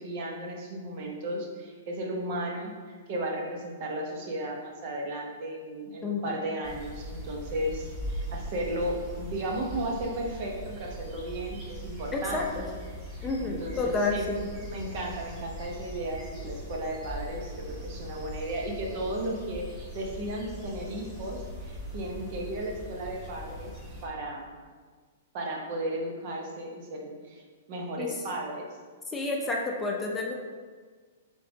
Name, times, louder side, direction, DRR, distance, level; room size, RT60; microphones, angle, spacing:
voice 1, 0.0-2.7 3.1-12.5 13.4-14.3 14.6-23.7 24.0-24.5 25.3-28.7, right 1 dB, 50° right, -1 dB, 0.9 m, -34 dB
voice 2, 6.0-6.4 12.1-12.6 13.2-14.4 28.0-28.1 29.1-30.3, left 3 dB, 15° left, -1 dB, 0.6 m, -30 dB
sound 1, 6.6-24.1, equal, 25° right, 1.4 m, -40 dB
3.6 x 3.4 x 3.8 m, 1.5 s
hypercardioid pair, 115°, 0 cm